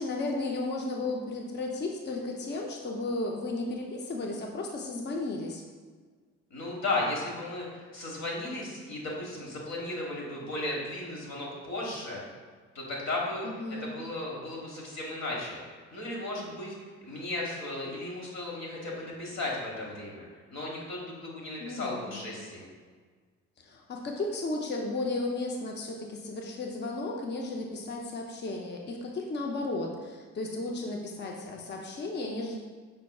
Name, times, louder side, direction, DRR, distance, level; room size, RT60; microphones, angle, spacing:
voice 1, 0.0-5.6 13.4-13.9 21.6-22.2 23.6-32.6, left 2 dB, 35° left, 0 dB, 0.6 m, -34 dB
voice 2, 6.5-12.2 12.7-13.5 13.8-16.7 17.0-20.2 20.5-22.7, left 2 dB, 60° left, -3 dB, 1.4 m, -35 dB
5.4 x 4.1 x 2.3 m, 1.5 s
cardioid pair, 90°, 30 cm